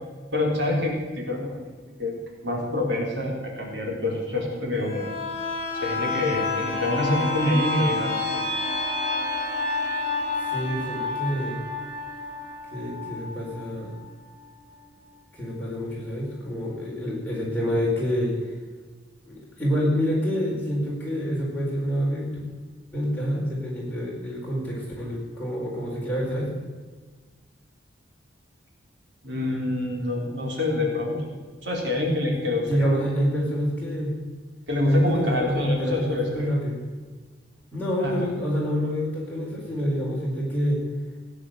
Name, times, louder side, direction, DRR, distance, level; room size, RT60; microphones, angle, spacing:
voice 1, 0.3-1.7 2.0-2.1 2.4-5.1 5.8-8.4 29.2-31.3 31.6-33.0 34.7-36.4 38.0-38.1, left 2 dB, 70° right, -1 dB, 3.7 m, -26 dB
sound 1, 4.8-14.3 14.7-14.8, left 3 dB, 35° left, 4.1 m, -29 dB
voice 2, 10.5-11.6 12.7-13.9 15.3-18.5 19.3-22.3 22.9-26.5 32.7-34.1 34.9-36.8 37.7-40.8, equal, 10° left, -5 dB, 4.5 m, -27 dB
16.0 x 9.8 x 7.9 m, 1.4 s
head